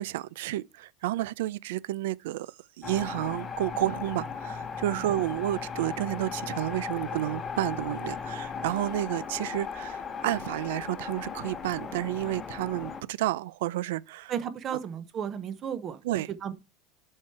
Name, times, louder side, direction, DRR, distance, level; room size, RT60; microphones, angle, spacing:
voice 1, 0.0-14.3 16.0-16.3, right 15 dB, 85° right, 0.4 m, -31 dB
sound 1, 2.8-13.0, left 6 dB, 20° left, 0.8 m, -37 dB
voice 2, 14.3-16.0 16.3-16.5, right 8 dB, 25° right, 0.8 m, -34 dB
7.4 x 4.6 x 4.6 m
supercardioid pair, 175°, 0 cm